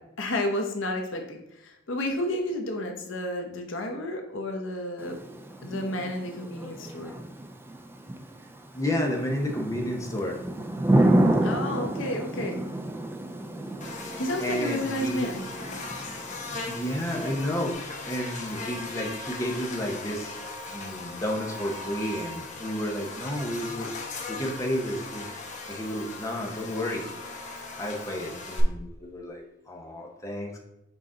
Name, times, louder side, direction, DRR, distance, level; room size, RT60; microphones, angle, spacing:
voice 1, 0.2-5.2 5.6-7.1 11.4-12.6 14.1-15.4, left 1 dB, 85° left, 3 dB, 1.0 m, -31 dB
Thunder / Rain, 5.0-17.7, right 1 dB, 10° right, 0.4 m, -30 dB
voice 2, 8.7-10.4 14.4-15.3 16.7-20.3 20.7-23.9 24.3-27.0 27.8-30.6, equal, 15° left, 0 dB, 0.8 m, -31 dB
Buzz, 13.8-28.6, left 3 dB, 40° left, 0.9 m, -38 dB
6.2 x 4.1 x 3.7 m, 0.88 s
head